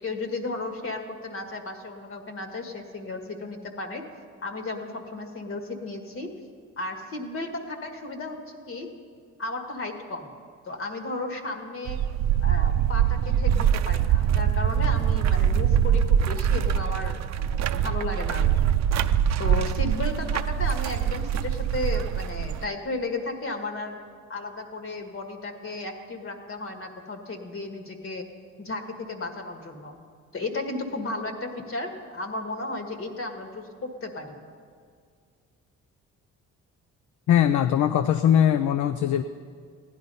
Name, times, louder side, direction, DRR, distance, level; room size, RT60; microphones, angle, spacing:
voice 1, 0.0-4.0 4.4-6.3 6.8-8.9 9.4-10.3 10.7-12.0 12.4-18.7 19.4-24.0 24.3-28.3 28.6-30.0 30.3-34.4, left 2 dB, 45° left, 5 dB, 1.6 m, -34 dB
sound 1, 11.9-22.7, right 9 dB, 60° right, 0.5 m, -23 dB
voice 2, 37.3-39.2, left 10 dB, 70° left, 9 dB, 0.6 m, -21 dB
15.5 x 10.5 x 5.5 m, 2.1 s
cardioid pair, 90°, 30 cm